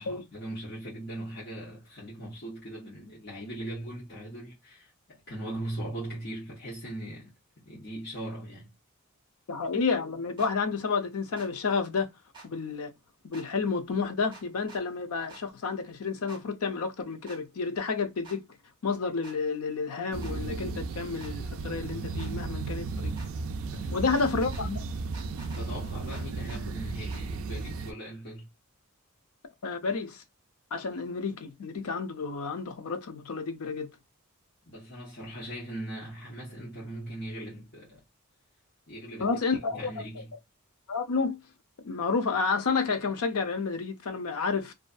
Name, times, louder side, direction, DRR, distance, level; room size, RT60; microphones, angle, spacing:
voice 1, 0.0-7.3 7.6-8.7 23.6-24.3 25.5-28.5 34.7-38.0 38.9-40.3, right 1 dB, 50° left, 1.0 m, -40 dB
voice 2, 9.5-12.1 12.4-12.9 13.2-18.5 18.8-23.1 23.9-24.8 29.6-30.2 30.7-33.9 39.2-39.9 40.9-41.4 41.8-44.7, left 4 dB, 85° left, 0.5 m, -30 dB
sound 1, 10.4-10.5 11.4-11.5 12.3-12.5 13.3-13.5 14.3-14.8 15.3-15.4 16.3-16.4 17.3-17.4 18.2-18.4 19.2-19.4 20.2-20.4 21.2-21.3 22.2-22.3 23.2-23.3 24.1-24.7 25.1-25.6 26.1-26.6 27.1-27.2, right 3 dB, 20° right, 1.0 m, -49 dB
sound 2, 20.1-27.9, right 3 dB, 70° right, 0.3 m, -35 dB
2.5 x 2.3 x 2.5 m
head